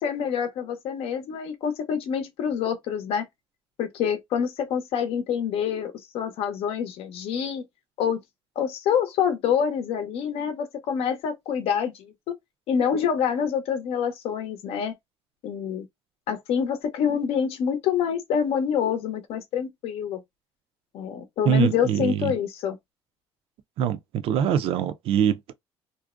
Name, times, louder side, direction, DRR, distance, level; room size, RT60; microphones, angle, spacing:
voice 1, 0.0-3.3 3.8-7.6 8.0-8.2 8.6-12.1 12.7-14.9 15.4-15.9 16.3-20.2 20.9-22.8, left 7 dB, 75° left, 0.6 m, -26 dB
voice 2, 21.5-22.3 23.8-25.5, right 9 dB, 70° right, 0.4 m, -24 dB
2.5 x 2.0 x 2.4 m
cardioid pair, 95°, 10 cm